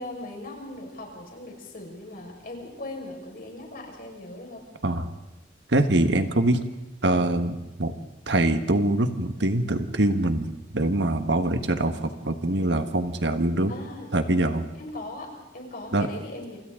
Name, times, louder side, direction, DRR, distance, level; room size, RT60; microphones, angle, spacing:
voice 1, 0.0-4.7 13.7-14.1 14.8-16.6, left 2 dB, 55° left, 1 dB, 5.3 m, -39 dB
voice 2, 5.7-6.6 7.0-7.9 8.3-13.7 14.1-14.6 15.9-16.1, right 1 dB, 75° right, 8 dB, 1.5 m, -24 dB
28.5 x 26.0 x 3.8 m, 0.99 s
head